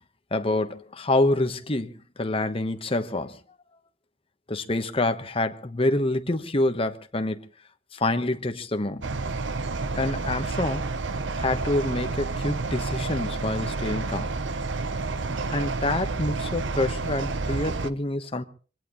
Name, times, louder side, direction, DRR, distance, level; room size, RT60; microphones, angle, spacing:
voice 1, 0.3-3.4 4.5-7.4 7.9-9.1 10.0-10.9 11.4-14.3 15.3-18.4, left 2 dB, 30° left, 1.2 m, -27 dB
sound 1, 9.0-17.9, right 3 dB, 85° right, 0.9 m, -30 dB
24.0 x 17.0 x 3.1 m
head